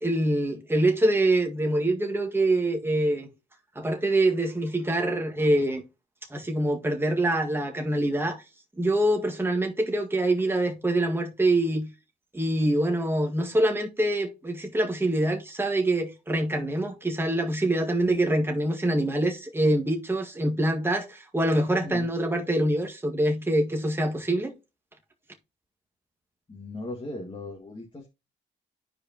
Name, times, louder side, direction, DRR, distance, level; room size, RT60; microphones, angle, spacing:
voice 1, 0.0-3.3 3.8-5.8 6.3-8.4 8.8-11.9 12.3-24.5, right 1 dB, 10° right, 1.8 m, -25 dB
voice 2, 21.8-22.1 26.5-28.1, left 2 dB, 20° left, 2.0 m, -38 dB
11.5 x 4.9 x 2.9 m
cardioid pair, 90°, 20 cm